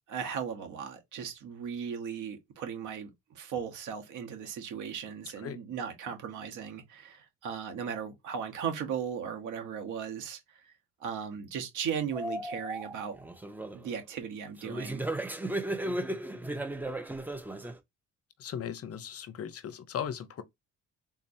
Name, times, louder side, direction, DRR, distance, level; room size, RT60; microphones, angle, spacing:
voice 1, 0.1-10.6 11.0-13.2 13.7-15.0, right 7 dB, 85° right, 1.2 m, -37 dB
sound 1, 12.1-13.9 14.6-17.8, right 1 dB, 5° right, 0.6 m, -35 dB
voice 2, 18.4-20.4, left 8 dB, 50° left, 0.7 m, -37 dB
3.7 x 2.8 x 2.7 m
cardioid pair, 90°, 30 cm